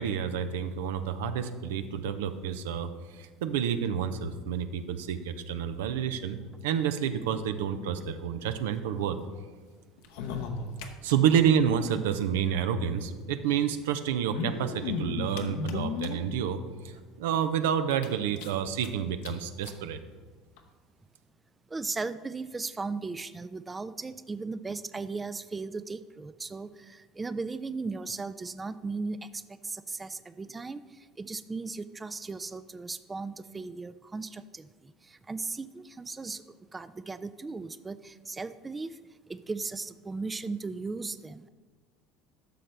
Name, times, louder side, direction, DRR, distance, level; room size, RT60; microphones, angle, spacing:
voice 1, 0.0-9.2 11.0-16.6 16.8-20.0, right 8 dB, 75° right, 10 dB, 0.5 m, -29 dB
sound 1, 10.0-11.4 11.7-11.8 12.0-12.1 13.1-13.2 14.1-16.4 17.0-17.1 17.4-17.5 17.9-18.9 19.2-19.3 19.6-19.8 20.6-20.7, left 5 dB, 70° left, 0.8 m, -35 dB
voice 2, 21.7-30.8 31.2-36.4 36.7-39.0 39.3-41.5, right 3 dB, 20° right, 13 dB, 0.4 m, -37 dB
11.5 x 6.4 x 3.3 m, 1.4 s
hypercardioid pair, 70°, 0 cm